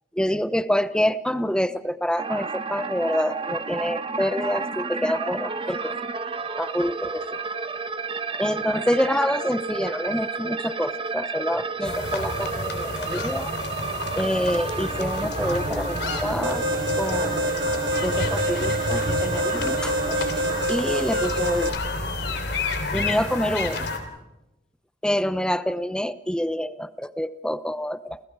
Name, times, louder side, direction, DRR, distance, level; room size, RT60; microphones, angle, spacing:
voice 1, 0.2-6.0 6.6-7.4 8.4-13.5 14.1-16.7 17.0-17.6 18.0-20.0 20.3-20.4 20.7-22.0 22.9-23.9 25.0-28.2, equal, 5° left, 13 dB, 0.8 m, -27 dB
sound 1, 2.2-20.6, right 4 dB, 30° right, 1.2 m, -31 dB
sound 2, 11.8-24.0, left 2 dB, 65° left, 3.5 m, -30 dB
Alarm, 16.4-21.7, right 1 dB, 80° right, 3.1 m, -27 dB
29.5 x 29.0 x 4.8 m, 0.95 s
head